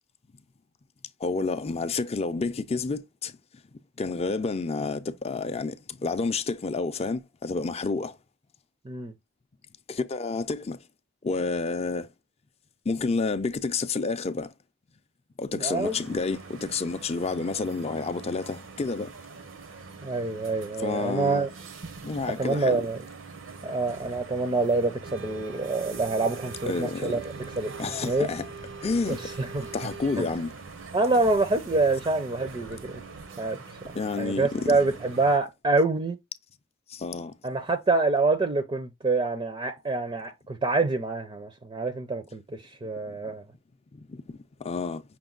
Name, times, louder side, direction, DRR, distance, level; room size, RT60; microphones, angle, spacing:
voice 1, 1.2-3.3 4.0-8.1 9.9-10.8 11.2-12.1 12.9-14.5 15.4-19.1 20.8-21.5 22.0-22.9 26.7-27.2 27.8-28.5 28.8-29.3 29.7-30.5 33.9-34.8 36.9-37.3 43.1-43.2 43.9-44.2 44.6-45.0, left 4 dB, 30° left, 0.5 m, -29 dB
voice 2, 15.5-16.2 20.0-21.5 22.4-23.0 23.6-27.2 27.6-28.3 29.1-29.7 30.2-30.4 30.9-33.0 33.4-36.2 37.4-43.4, right 3 dB, 25° right, 0.5 m, -26 dB
sound 1, 15.8-35.4, right 4 dB, 75° right, 0.8 m, -43 dB
5.9 x 2.2 x 3.7 m
head